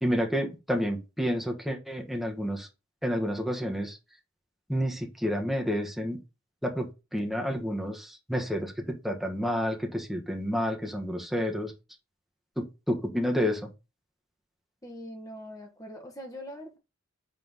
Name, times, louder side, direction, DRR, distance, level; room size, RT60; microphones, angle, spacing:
voice 1, 0.0-2.7 3.0-4.0 4.7-6.2 6.6-11.7 12.6-13.7, equal, ahead, 1.3 m, -30 dB
voice 2, 14.8-16.8, equal, 15° left, 1.4 m, -42 dB
5.5 x 4.4 x 5.6 m
head